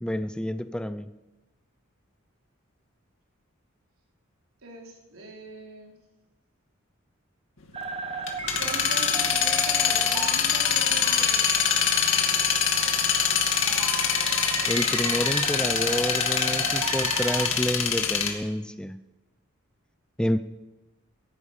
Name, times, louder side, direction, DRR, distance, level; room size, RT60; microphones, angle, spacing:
voice 1, 0.0-1.1 14.6-19.0 20.2-20.4, equal, 5° left, 12 dB, 0.4 m, -29 dB
voice 2, 4.6-6.0 8.6-11.9, right 1 dB, 80° right, -1 dB, 4.0 m, -41 dB
sound 1, 7.7-17.5, right 4 dB, 30° right, 1.3 m, -34 dB
sound 2, 7.9-18.3, left 7 dB, 65° left, 2.3 m, -24 dB
14.0 x 11.0 x 8.3 m, 1.0 s
head